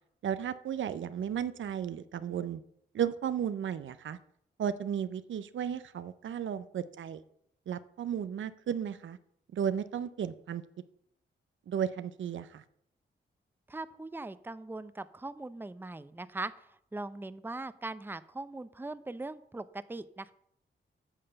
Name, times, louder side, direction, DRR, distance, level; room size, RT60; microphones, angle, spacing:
voice 1, 0.2-2.6 2.9-4.2 4.6-7.2 7.7-9.2 9.5-10.6 11.7-12.6, right 8 dB, 75° right, 0.6 m, -34 dB
voice 2, 13.7-20.3, right 2 dB, 10° right, 0.6 m, -40 dB
8.8 x 6.7 x 6.8 m
cardioid pair, 70°, 20 cm